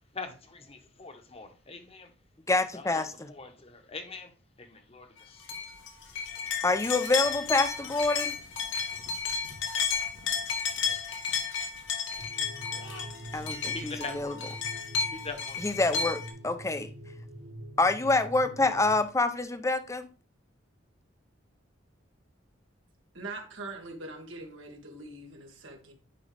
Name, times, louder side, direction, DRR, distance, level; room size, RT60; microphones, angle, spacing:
voice 1, 0.1-2.1 2.7-4.3 4.6-5.5 13.7-14.3 15.1-15.6, left 4 dB, 30° left, 1.1 m, -42 dB
voice 2, 2.5-3.3 6.6-8.4 13.3-14.3 15.6-16.9 17.8-20.1, left 2 dB, 15° left, 0.6 m, -27 dB
sound 1, 5.5-16.3, left 6 dB, 75° left, 1.6 m, -33 dB
sound 2, 12.2-19.0, equal, 55° right, 1.1 m, -45 dB
voice 3, 23.1-25.9, right 2 dB, 85° right, 1.8 m, -42 dB
9.9 x 3.8 x 3.4 m
head